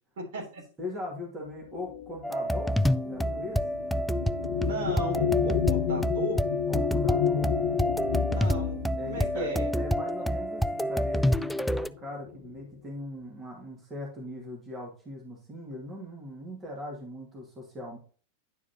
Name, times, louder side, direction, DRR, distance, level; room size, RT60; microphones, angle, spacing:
voice 1, 0.2-0.6 4.6-6.4 8.3-8.7 9.0-9.7, right 1 dB, 55° right, 0 dB, 3.3 m, -34 dB
voice 2, 0.8-3.6 6.7-7.5 8.9-18.0, left 1 dB, 20° right, -1 dB, 2.4 m, -40 dB
sound 1, 1.7-10.7 11.6-11.7 12.1-12.6, left 9 dB, 50° left, 0.8 m, -31 dB
sound 2, 2.2-11.9, equal, ahead, 0.3 m, -28 dB
10.0 x 4.8 x 2.9 m, 0.38 s
figure-of-eight pair, 90°, 0 cm